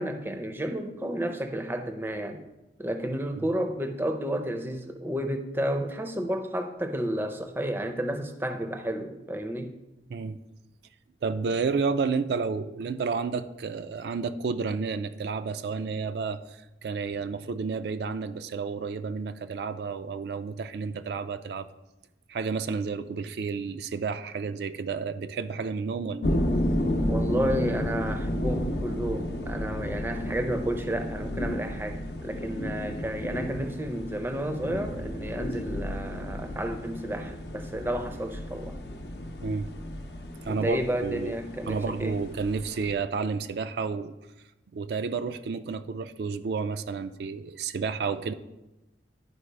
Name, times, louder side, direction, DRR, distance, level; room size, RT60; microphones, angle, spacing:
voice 1, 0.0-2.4 2.8-9.7 27.1-38.8 40.5-42.2, right 1 dB, 10° right, 6 dB, 0.5 m, -31 dB
voice 2, 11.2-21.7 22.3-26.4 39.4-39.7 40.4-41.3 41.7-44.1 44.7-48.3, right 5 dB, 65° right, 9 dB, 0.3 m, -31 dB
sound 1, 26.2-42.9, left 1 dB, 70° left, 0.7 m, -32 dB
11.0 x 4.6 x 3.3 m, 0.96 s
head